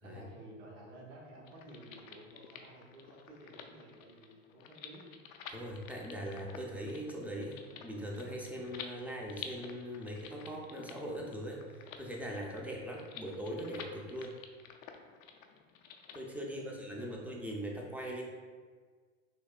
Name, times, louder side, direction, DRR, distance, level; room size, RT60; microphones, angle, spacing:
voice 1, 0.0-5.1 12.5-12.8 16.4-17.3, right 1 dB, 70° right, -1 dB, 1.0 m, -53 dB
sound 1, 1.4-16.2, left 7 dB, 80° left, 0.5 m, -51 dB
voice 2, 5.5-14.4 16.1-18.2, equal, 5° right, -1 dB, 0.5 m, -41 dB
6.2 x 2.1 x 2.4 m, 1.5 s
hypercardioid pair, 85°, 39 cm